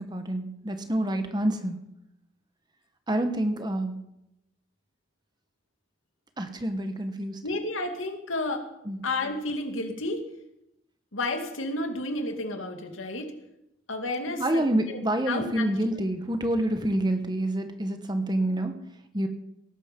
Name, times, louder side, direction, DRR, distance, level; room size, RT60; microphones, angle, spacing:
voice 1, 0.0-1.8 3.1-4.0 6.4-7.4 8.8-9.0 14.2-18.7 19.1-19.3, right 1 dB, 20° right, 7 dB, 1.3 m, -27 dB
voice 2, 7.4-8.7 9.0-10.3 11.1-13.3 13.9-15.0 15.3-15.7, left 2 dB, 90° left, 5 dB, 2.4 m, -31 dB
19.0 x 12.0 x 5.4 m, 0.85 s
head